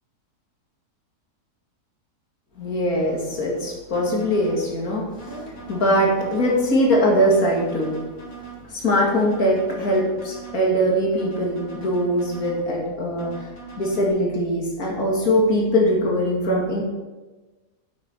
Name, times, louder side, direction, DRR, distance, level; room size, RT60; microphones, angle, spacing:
voice 1, 2.6-8.0 8.7-16.8, equal, 65° left, -2 dB, 2.6 m, -22 dB
sound 1, 3.9-4.6 5.2-6.6 7.2-8.6 9.2-10.6 11.2-12.6 13.2-14.1, right 6 dB, 90° left, 3.0 m, -40 dB
8.6 x 8.3 x 4.5 m, 1.2 s
omnidirectional pair, 1.7 m